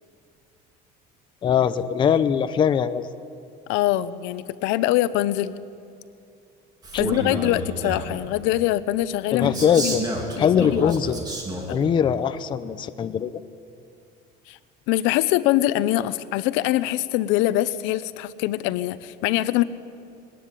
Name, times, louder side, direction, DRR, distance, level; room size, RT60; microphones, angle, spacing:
voice 1, 1.4-3.1 9.3-10.0 10.4-11.2 11.7-13.4, left 8 dB, 25° left, 11 dB, 0.6 m, -21 dB
voice 2, 3.7-5.5 7.0-10.0 10.4-10.9 11.7-11.8 14.5-14.6 14.9-19.6, left 15 dB, 80° left, 15 dB, 0.8 m, -23 dB
Male speech man speaking, 6.8-8.2 9.4-11.8, right 2 dB, 20° right, 3.1 m, -30 dB
21.0 x 18.0 x 9.9 m, 2.5 s
cardioid pair, 175°, 19 cm